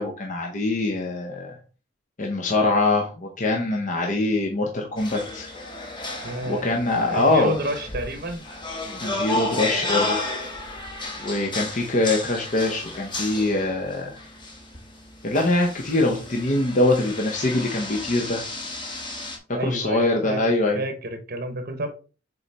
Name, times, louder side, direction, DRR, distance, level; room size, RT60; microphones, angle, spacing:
voice 1, 0.0-1.5 2.2-5.5 6.5-7.5 9.0-10.2 11.2-14.2 15.2-18.4 19.6-20.8, left 2 dB, 40° left, 1 dB, 0.8 m, -23 dB
sound 1, 5.0-19.4, left 2 dB, 25° left, 1.2 m, -33 dB
voice 2, 6.2-6.7 7.1-8.4 19.5-20.4 20.7-21.9, right 1 dB, 50° right, 6 dB, 0.9 m, -30 dB
6.9 x 4.1 x 3.4 m, 0.35 s
head